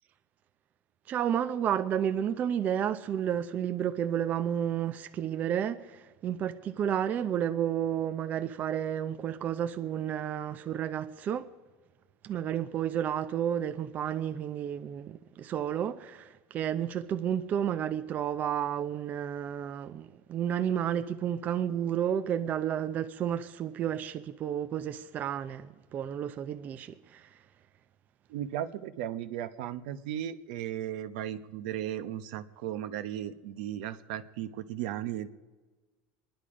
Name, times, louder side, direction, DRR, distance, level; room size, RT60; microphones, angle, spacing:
voice 1, 1.1-11.5 12.2-27.3, right 9 dB, 35° right, 0.6 m, -31 dB
voice 2, 28.3-35.3, right 11 dB, 75° right, 0.9 m, -36 dB
25.0 x 10.5 x 5.0 m
supercardioid pair, 140°, 5 cm